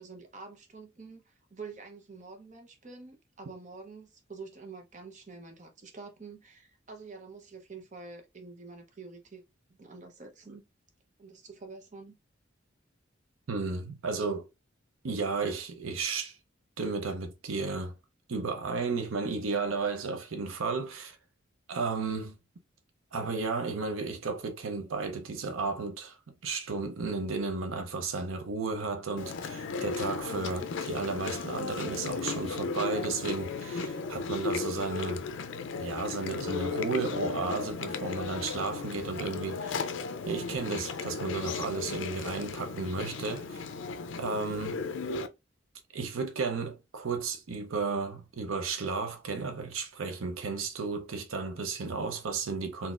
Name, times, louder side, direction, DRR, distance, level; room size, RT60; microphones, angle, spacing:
voice 1, 0.0-9.4 9.7-10.6 11.2-12.2, right 4 dB, 40° right, 0.7 m, -47 dB
voice 2, 13.5-14.5 15.0-16.4 16.8-18.0 18.3-21.2 21.7-22.3 23.1-26.2 26.4-35.2 35.8-39.9 40.3-43.6 44.2-44.9 45.9-52.9, right 4 dB, 90° right, 0.6 m, -33 dB
Chewing mastication, 29.2-45.3, left 4 dB, 65° left, 0.4 m, -35 dB
3.9 x 2.7 x 2.4 m
head